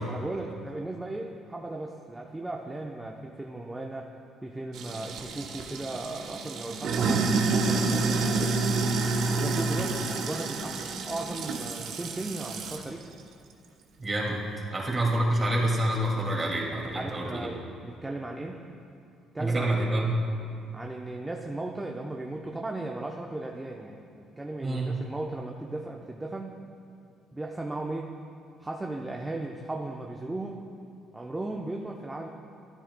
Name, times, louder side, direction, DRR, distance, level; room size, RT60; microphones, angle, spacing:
voice 1, 0.0-4.1 4.4-8.6 9.3-10.0 10.3-13.1 16.9-18.6 19.3-20.0 20.7-26.7 27.3-28.1 28.6-30.7 31.1-32.3, right 2 dB, 15° right, 0 dB, 0.8 m, -36 dB
Sink (filling or washing), 4.7-12.9, right 3 dB, 70° right, 0.9 m, -29 dB
voice 2, 14.0-17.5 19.4-20.2 24.6-24.9, right 1 dB, 30° right, -1 dB, 2.4 m, -27 dB
13.5 x 10.0 x 2.3 m, 2.6 s
supercardioid pair, 65°, 0 cm